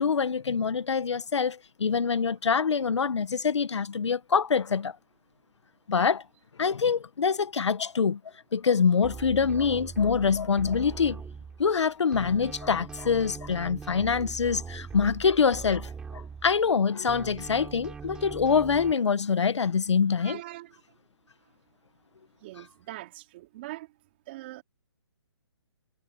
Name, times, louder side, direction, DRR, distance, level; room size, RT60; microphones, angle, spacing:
voice 1, 0.0-5.0 5.9-6.2 6.6-8.2 8.5-11.2 11.6-20.4, left 6 dB, 80° left, 1.2 m, -25 dB
sound 1, 9.0-11.8 12.1-16.8 17.1-18.9, right 5 dB, 5° right, 7.3 m, -41 dB
voice 2, 20.2-20.7 22.4-23.9 24.3-24.6, right 17 dB, 25° right, 3.0 m, -42 dB
hypercardioid pair, 175°, 15 cm